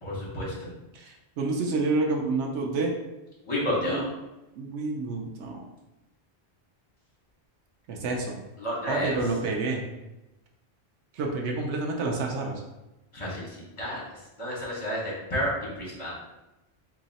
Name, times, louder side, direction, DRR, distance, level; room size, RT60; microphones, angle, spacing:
voice 1, 0.0-0.7 3.5-4.1 8.6-9.2 13.1-14.0 14.4-16.2, equal, 30° left, -6 dB, 1.4 m, -30 dB
voice 2, 0.9-2.9 3.6-4.0 4.6-5.7 7.9-8.4 8.9-9.8 11.1-12.6, right 3 dB, 85° right, 1 dB, 0.9 m, -29 dB
2.9 x 2.7 x 4.0 m, 0.97 s
omnidirectional pair, 1.1 m